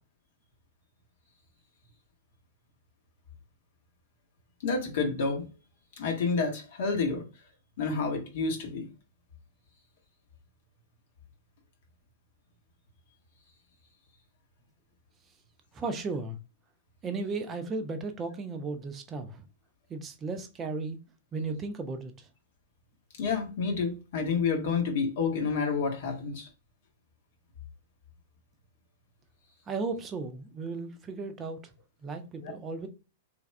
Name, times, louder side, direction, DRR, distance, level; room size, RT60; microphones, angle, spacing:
voice 1, 4.6-5.5 6.0-7.2 7.8-8.9 23.2-26.5 32.4-32.5, left 4 dB, 55° left, 0.9 m, -29 dB
voice 2, 15.7-16.4 17.0-19.4 19.9-21.0 21.3-22.3 29.7-31.6 32.0-32.9, right 3 dB, 20° right, 0.5 m, -35 dB
3.3 x 2.3 x 3.2 m
figure-of-eight pair, 100°, 0 cm